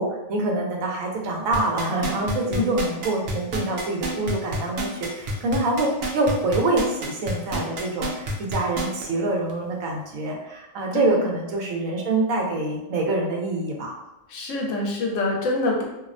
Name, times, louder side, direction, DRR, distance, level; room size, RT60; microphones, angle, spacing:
voice 1, 0.0-13.9, right 2 dB, 85° right, 0 dB, 1.0 m, -25 dB
sound 1, 1.5-9.0 9.5-9.6, right 1 dB, 65° right, 0.6 m, -28 dB
voice 2, 10.9-11.3 14.3-15.9, left 2 dB, 75° left, -1 dB, 0.9 m, -25 dB
2.6 x 2.0 x 2.4 m, 0.95 s
omnidirectional pair, 1.4 m